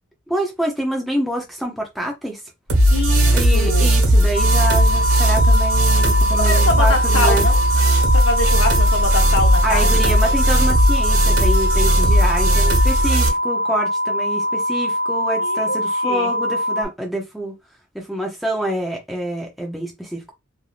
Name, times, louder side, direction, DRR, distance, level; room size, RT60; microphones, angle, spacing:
voice 1, 0.3-2.4 3.3-7.5 9.6-17.5 17.9-20.3, right 1 dB, ahead, 0.6 m, -26 dB
sound 1, 2.7-13.3, right 1 dB, 75° right, 1.3 m, -16 dB
voice 2, 2.9-4.0 6.3-7.6 8.1-10.3 15.4-15.8 16.0-16.3, left 2 dB, 65° left, 0.8 m, -24 dB
sound 2, 4.3-16.9, equal, 40° right, 1.4 m, -23 dB
3.3 x 2.6 x 2.4 m
head